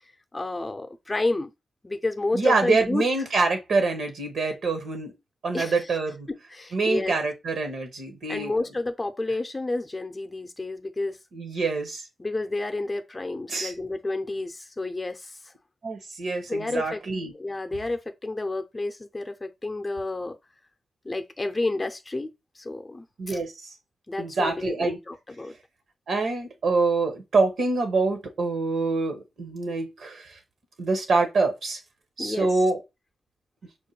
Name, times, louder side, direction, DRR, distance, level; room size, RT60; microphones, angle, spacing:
voice 1, 0.3-1.5 1.8-3.2 5.5-6.0 6.3-7.2 8.3-11.2 12.2-15.4 16.5-17.0 17.3-20.4 21.0-23.4 24.1-25.5 32.2-32.6, left 2 dB, 30° left, 0.6 m, -30 dB
voice 2, 2.3-5.1 5.4-6.3 6.7-8.5 11.3-12.0 13.5-13.7 15.8-17.3 23.2-23.7 24.2-25.0 26.1-30.3 30.8-31.8 32.2-32.8, right 3 dB, 75° right, 1.0 m, -25 dB
4.5 x 2.2 x 3.0 m
supercardioid pair, 45°, 0 cm